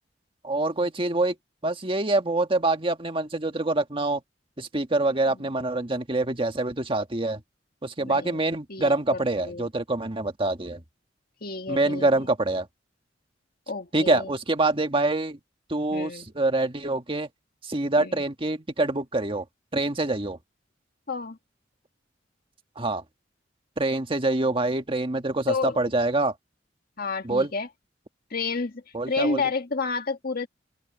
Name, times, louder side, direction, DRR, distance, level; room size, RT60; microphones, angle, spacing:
voice 1, 0.4-1.3 1.6-4.2 4.6-7.4 7.8-10.8 11.7-12.7 13.9-15.4 15.7-17.3 17.6-19.4 19.7-20.4 22.7-23.0 23.8-26.3 27.2-27.5 28.9-29.4, right 2 dB, 30° right, 1.6 m, -25 dB
voice 2, 8.0-8.4 8.7-9.7 11.4-12.3 13.7-14.3 15.9-16.3 18.0-18.2 21.1-21.4 25.5-25.8 27.0-27.7 28.3-30.5, left 4 dB, 55° left, 1.8 m, -30 dB
head